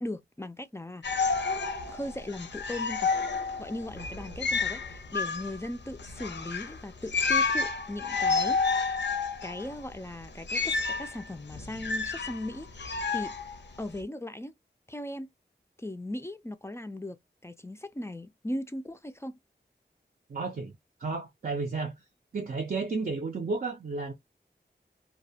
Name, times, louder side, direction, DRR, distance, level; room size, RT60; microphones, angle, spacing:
voice 1, 0.0-1.0 1.9-3.1 3.6-8.6 9.4-13.3 13.8-14.5 14.9-15.3 15.8-19.4, left 1 dB, 15° left, 0.3 m, -38 dB
sound 1, 1.0-14.0, left 4 dB, 85° left, 0.5 m, -30 dB
voice 2, 20.3-20.7 21.0-22.0 22.3-24.1, right 4 dB, 55° right, 0.5 m, -32 dB
2.3 x 2.0 x 2.6 m
wide cardioid pair, 75°, 18 cm